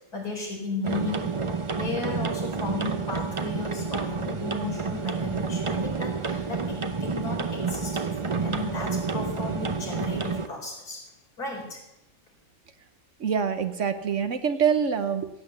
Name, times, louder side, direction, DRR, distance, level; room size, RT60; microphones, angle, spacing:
voice 1, 0.1-1.3 1.7-11.0 11.4-11.8, left 3 dB, 85° left, -2 dB, 4.7 m, -35 dB
sound 1, 0.8-10.5, right 4 dB, 35° right, 0.5 m, -29 dB
voice 2, 13.2-15.3, right 7 dB, 60° right, 10 dB, 1.1 m, -25 dB
16.0 x 8.7 x 7.0 m, 0.90 s
omnidirectional pair, 1.6 m